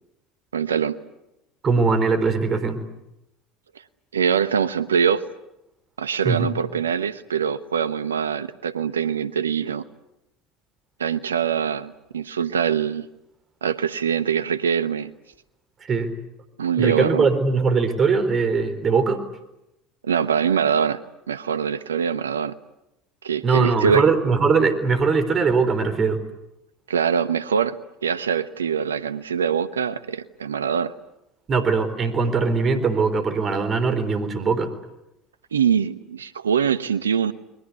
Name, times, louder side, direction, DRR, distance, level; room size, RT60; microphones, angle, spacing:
voice 1, 0.5-1.0 4.1-5.2 6.0-9.8 11.0-13.1 13.6-15.1 16.6-17.3 20.0-21.0 21.3-22.5 23.2-24.1 26.9-27.8 28.0-30.9 35.5-37.3, right 7 dB, 85° right, 15 dB, 1.0 m, -23 dB
voice 2, 1.6-2.8 6.2-6.5 15.8-16.1 16.8-19.2 23.4-26.2 31.5-34.7, right 4 dB, 35° right, 11 dB, 4.1 m, -21 dB
30.0 x 22.0 x 8.3 m, 0.90 s
hypercardioid pair, 70°, 0 cm